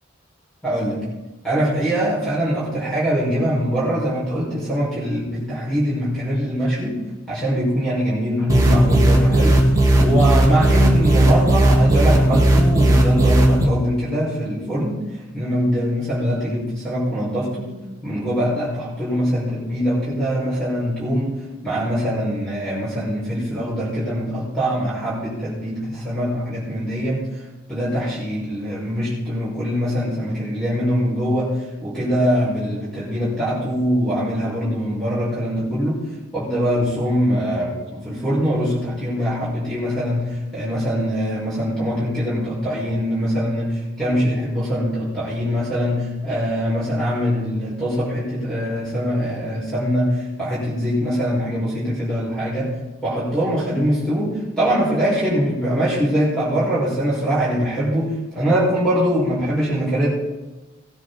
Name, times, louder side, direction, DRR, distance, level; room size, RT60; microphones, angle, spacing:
voice 1, 0.6-1.0 1.4-7.0 7.3-9.6 10.0-15.0 15.3-17.7 18.0-27.2 27.7-36.0 36.3-52.7 53.0-60.1, equal, 5° left, -8 dB, 5.5 m, -23 dB
sound 1, 8.5-13.6, right 1 dB, 20° right, 1.9 m, -15 dB
18.0 x 10.0 x 4.1 m, 1.1 s
head